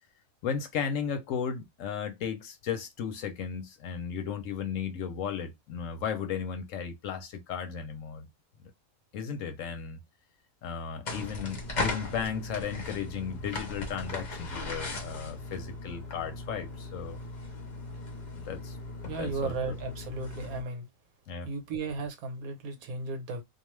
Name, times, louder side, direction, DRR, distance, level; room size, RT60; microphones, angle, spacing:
voice 1, 0.4-8.3 8.6-8.7 9.1-10.0 10.6-17.2 18.3-18.8 19.2-19.5 21.3-21.5, left 7 dB, 70° left, 0.9 m, -35 dB
sound 1, 11.1-20.6, left 2 dB, 45° left, 0.6 m, -38 dB
voice 2, 19.1-20.9 21.4-23.4, right 3 dB, 75° right, 1.2 m, -35 dB
2.4 x 2.3 x 3.0 m
omnidirectional pair, 1.5 m